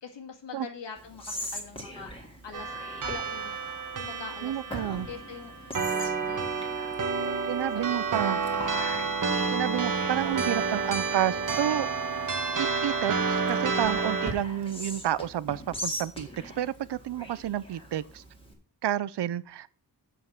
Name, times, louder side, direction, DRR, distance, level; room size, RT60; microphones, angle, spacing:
voice 1, 0.0-2.2 2.4-2.7 3.0-3.7 3.9-6.5 7.2-7.4 7.8-8.4, left 5 dB, 90° left, 2.0 m, -44 dB
Whispering, 1.0-18.5, equal, 15° left, 1.9 m, -42 dB
sound 1, 2.5-14.3, right 4 dB, 50° right, 1.1 m, -30 dB
voice 2, 4.4-5.1 7.5-8.4 9.5-11.9 12.1-12.3 12.6-18.2 18.8-19.7, right 11 dB, 70° right, 0.5 m, -30 dB
7.7 x 5.8 x 6.6 m
wide cardioid pair, 160°, 42 cm